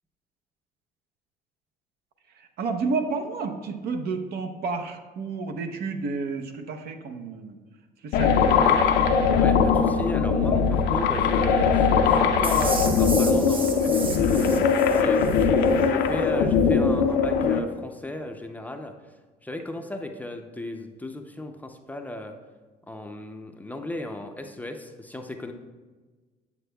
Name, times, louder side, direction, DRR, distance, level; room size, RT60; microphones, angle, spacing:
voice 1, 2.3-7.6 8.0-8.6, right 4 dB, 70° right, 6 dB, 0.7 m, -31 dB
sound 1, 8.1-17.6, left 6 dB, 85° left, 0.6 m, -21 dB
voice 2, 8.5-8.9 9.3-14.6 14.9-18.9 19.4-22.4 22.9-25.5, left 1 dB, 10° left, 4 dB, 0.5 m, -35 dB
sound 2, 12.4-15.4, right 3 dB, 30° right, 0.9 m, -34 dB
8.1 x 7.0 x 2.2 m, 1.3 s
cardioid pair, 110°, 17 cm